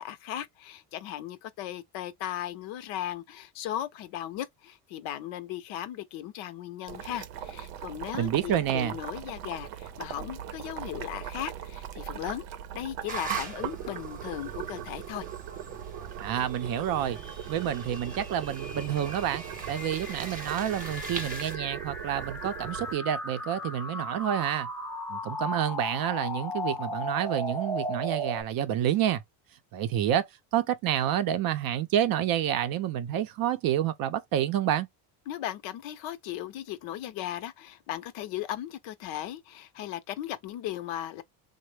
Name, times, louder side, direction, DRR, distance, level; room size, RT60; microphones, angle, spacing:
voice 1, 0.0-12.4 12.7-15.3 35.3-41.2, left 12 dB, 65° left, 0.7 m, -37 dB
Boiling, 6.9-22.9, right 10 dB, 85° right, 0.7 m, -40 dB
voice 2, 8.1-8.9 16.2-17.2 17.5-24.7 25.1-29.2 29.7-34.9, right 10 dB, 45° right, 0.5 m, -29 dB
sound 1, 13.1-21.6, right 3 dB, 15° right, 0.9 m, -42 dB
sound 2, 16.5-28.4, equal, 5° left, 0.5 m, -37 dB
3.2 x 2.1 x 3.2 m
cardioid pair, 115°, 49 cm